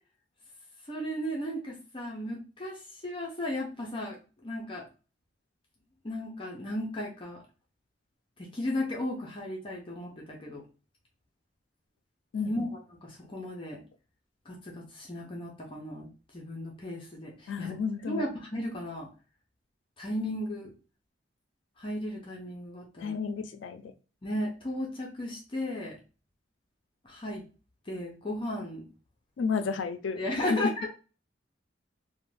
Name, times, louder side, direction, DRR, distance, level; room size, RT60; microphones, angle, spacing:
voice 1, 0.9-4.9 6.0-7.4 8.4-10.6 12.5-12.7 13.0-13.8 14.5-17.7 18.0-19.1 20.0-20.7 21.8-23.1 24.2-26.0 27.0-27.4 27.9-28.8 30.2-30.9, left 1 dB, 30° left, -2 dB, 0.6 m, -35 dB
voice 2, 12.3-12.7 17.5-18.3 23.0-23.9 29.4-30.7, left 5 dB, 85° left, 8 dB, 0.4 m, -32 dB
2.5 x 2.1 x 3.1 m, 0.34 s
head